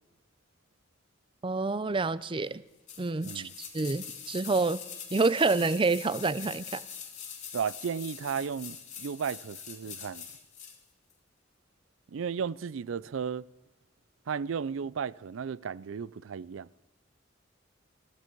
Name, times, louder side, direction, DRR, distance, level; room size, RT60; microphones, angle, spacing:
voice 1, 1.4-2.6 3.0-3.5 3.7-4.8 5.1-6.8, right 3 dB, 25° right, 0.5 m, -27 dB
sound 1, 2.9-10.8 11.1-11.2, left 7 dB, 40° left, 2.0 m, -43 dB
voice 2, 7.5-10.3 12.1-13.5 14.3-16.7, right 6 dB, 85° right, 0.4 m, -34 dB
22.0 x 14.0 x 4.6 m
head